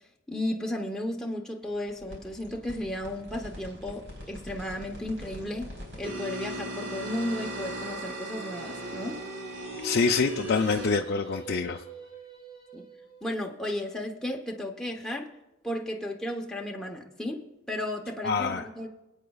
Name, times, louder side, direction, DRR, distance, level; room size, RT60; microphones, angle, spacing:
voice 1, 0.3-9.2 12.7-12.9 13.2-15.3 15.6-17.4 17.7-18.9, left 1 dB, 5° left, 0 dB, 0.9 m, -34 dB
sound 1, 1.9-10.9, right 1 dB, 65° right, 4.2 m, -39 dB
Singing, 8.2-13.4, right 4 dB, 25° right, 3.7 m, -45 dB
voice 2, 9.8-11.8 18.2-18.6, left 4 dB, 50° left, 2 dB, 0.5 m, -26 dB
26.5 x 8.8 x 2.4 m, 0.99 s
head